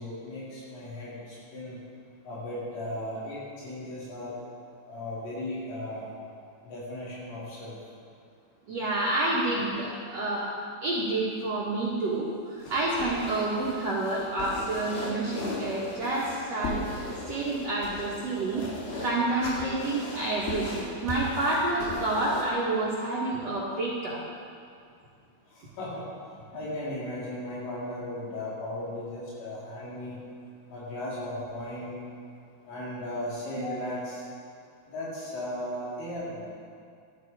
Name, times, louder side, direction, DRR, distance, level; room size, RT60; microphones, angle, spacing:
voice 1, 0.0-1.8 2.2-4.3 4.9-6.1 6.6-7.8 25.5-26.0 26.5-30.2 30.7-32.0 32.6-34.2 34.9-36.5, left 1 dB, 80° left, -8 dB, 6.7 m, -36 dB
voice 2, 8.7-17.0 17.3-18.6 19.0-24.2 33.6-33.8, right 2 dB, 80° right, -7 dB, 1.4 m, -29 dB
sound 1, 12.6-22.5, left 2 dB, 60° left, 3.8 m, -37 dB
14.0 x 13.0 x 4.8 m, 2.3 s
omnidirectional pair, 5.6 m